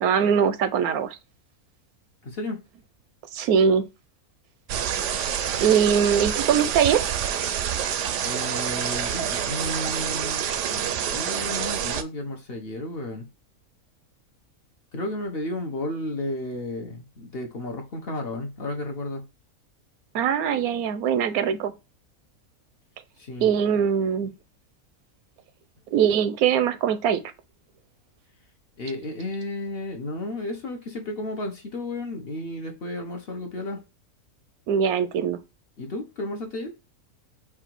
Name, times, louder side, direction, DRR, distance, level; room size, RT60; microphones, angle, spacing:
voice 1, 0.0-1.2 3.3-3.8 5.6-7.0 20.1-21.7 23.4-24.3 25.9-27.2 34.7-35.4, right 7 dB, 85° right, 1.1 m, -22 dB
voice 2, 2.2-2.6 8.2-13.3 14.9-19.3 23.2-23.5 28.8-33.8 35.8-36.7, left 1 dB, 50° left, 1.0 m, -33 dB
sound 1, 4.7-12.0, right 9 dB, 65° right, 0.8 m, -27 dB
4.9 x 2.4 x 4.5 m
omnidirectional pair, 1.5 m